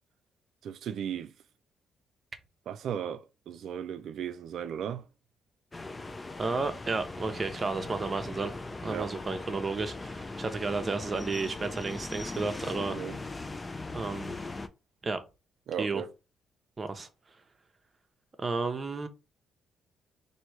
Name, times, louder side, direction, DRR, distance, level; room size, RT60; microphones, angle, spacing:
voice 1, 0.6-1.3 2.7-5.1 8.9-9.1 12.8-13.2 15.7-16.1, right 8 dB, 70° right, 0.4 m, -36 dB
sound 1, 5.7-14.7, left 3 dB, 20° left, 0.4 m, -39 dB
voice 2, 6.4-8.5 8.8-13.0 13.9-14.3 15.0-15.2 15.8-16.0 16.8-17.1 18.4-19.1, right 3 dB, 30° right, 0.7 m, -32 dB
3.0 x 2.7 x 4.5 m
cardioid pair, 90°, 0 cm